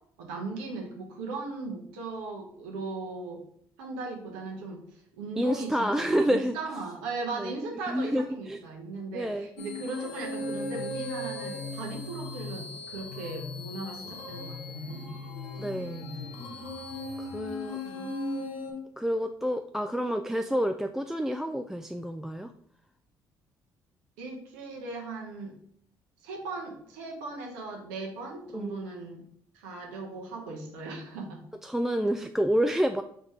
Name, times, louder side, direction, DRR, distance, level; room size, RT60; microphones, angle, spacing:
voice 1, 0.2-3.4 3.8-15.2 15.8-16.2 17.8-18.1 24.2-25.5 26.2-29.2 29.5-31.4, right 3 dB, 80° right, 0 dB, 1.1 m, -38 dB
voice 2, 5.4-6.6 7.4-7.5 7.9-8.6 9.1-9.5 15.6-16.1 17.2-17.8 19.0-22.5 28.5-28.8 31.6-33.0, equal, 5° right, 7 dB, 0.3 m, -28 dB
sound 1, 9.6-18.7, left 2 dB, 75° left, 1.0 m, -37 dB
4.0 x 3.9 x 3.2 m, 0.66 s
hypercardioid pair, 50°, 10 cm